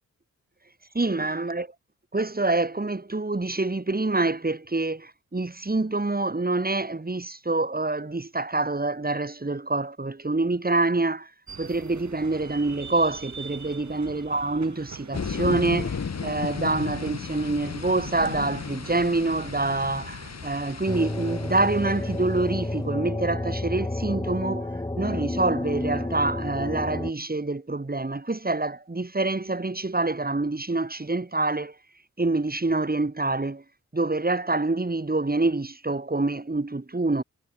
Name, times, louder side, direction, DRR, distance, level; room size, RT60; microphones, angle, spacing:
voice 1, 0.9-1.7 2.1-11.3 11.6-31.7 32.2-33.6 33.9-37.2, right 2 dB, 30° right, 6.3 m, -26 dB
sound 1, 11.5-23.0, right 5 dB, 60° right, 7.1 m, -45 dB
sound 2, 15.1-22.6, left 6 dB, 55° left, 2.4 m, -34 dB
sound 3, 20.9-27.1, left 2 dB, 15° left, 1.8 m, -30 dB
cardioid pair, 50°, 33 cm